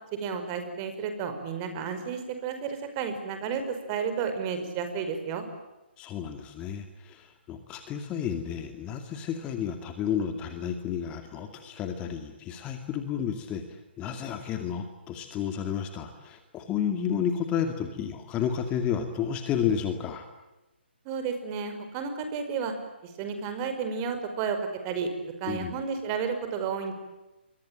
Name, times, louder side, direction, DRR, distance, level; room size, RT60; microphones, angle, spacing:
voice 1, 0.1-5.5 21.1-22.7 23.0-25.1 25.4-26.9, right 6 dB, 25° right, 7 dB, 5.2 m, -32 dB
voice 2, 6.0-20.3 25.5-25.7, left 8 dB, 20° left, 7 dB, 2.3 m, -31 dB
28.0 x 23.5 x 9.0 m, 1.0 s
figure-of-eight pair, 140°, 6 cm